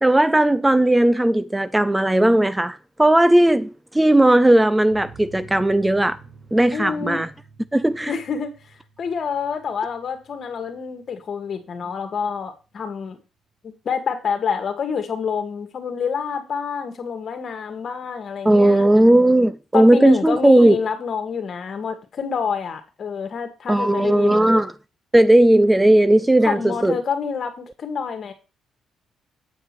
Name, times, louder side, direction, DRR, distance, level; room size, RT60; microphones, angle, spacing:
voice 1, 0.0-6.2 6.5-7.3 7.7-8.1 18.4-20.8 23.7-24.7 25.1-27.0, right 1 dB, 10° right, 0.5 m, -16 dB
sound 1, 4.9-12.0 12.3-12.4 12.7-12.8, right 5 dB, 85° right, 1.8 m, -49 dB
voice 2, 6.7-7.2 8.1-13.2 13.6-18.9 19.7-24.5 26.4-28.3, left 6 dB, 50° left, 2.1 m, -27 dB
8.7 x 5.5 x 6.0 m
cardioid pair, 90°, 0 cm